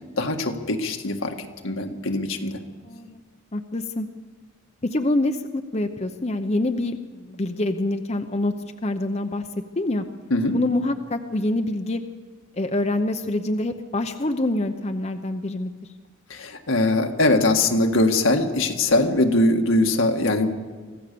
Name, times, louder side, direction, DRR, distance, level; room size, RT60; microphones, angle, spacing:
voice 1, 0.2-2.6 10.3-10.6 16.3-20.5, left 2 dB, 85° left, 3 dB, 1.8 m, -21 dB
voice 2, 2.9-3.2 3.5-4.1 4.9-8.5 8.8-9.4 9.8-10.0 10.5-12.0 12.6-15.7, left 2 dB, 30° left, 7 dB, 0.7 m, -25 dB
25.0 x 15.5 x 6.9 m, 1.5 s
head